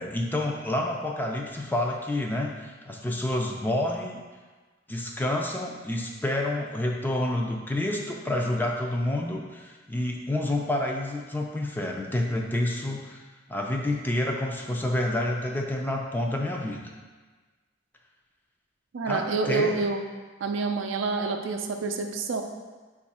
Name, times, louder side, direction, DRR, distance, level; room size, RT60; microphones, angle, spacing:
voice 1, 0.0-4.2 4.9-13.2 13.5-16.8 19.1-19.8, left 1 dB, 10° left, 0 dB, 0.4 m, -28 dB
voice 2, 18.9-20.0 20.4-22.4, right 4 dB, 80° right, 4 dB, 0.4 m, -28 dB
5.3 x 2.4 x 4.1 m, 1.3 s
head